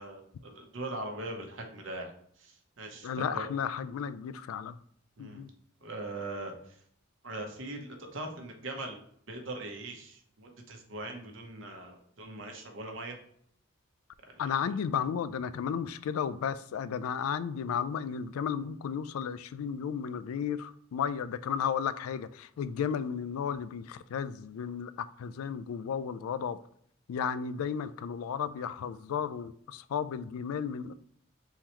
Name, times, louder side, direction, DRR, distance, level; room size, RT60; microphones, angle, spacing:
voice 1, 0.0-2.1 2.4-3.5 5.2-5.4 5.8-6.8 7.2-13.2 14.3-14.4, right 2 dB, 60° right, 0.9 m, -41 dB
voice 2, 3.0-4.8 5.2-5.5 14.4-24.9 25.2-26.6 27.1-30.9, left 7 dB, 85° left, 0.3 m, -33 dB
3.8 x 3.0 x 4.3 m
head